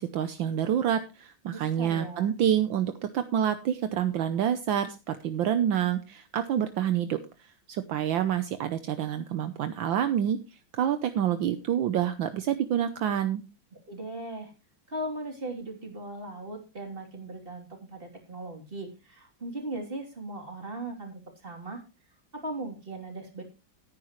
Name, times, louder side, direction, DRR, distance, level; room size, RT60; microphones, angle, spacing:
voice 1, 0.0-7.2 7.7-10.4 10.8-13.4, right 9 dB, 75° right, 9 dB, 1.5 m, -27 dB
voice 2, 1.5-2.3 13.7-14.5 14.9-21.8 22.3-23.4, right 1 dB, 25° right, 2 dB, 3.2 m, -38 dB
15.5 x 9.8 x 3.1 m, 0.29 s
omnidirectional pair, 2.3 m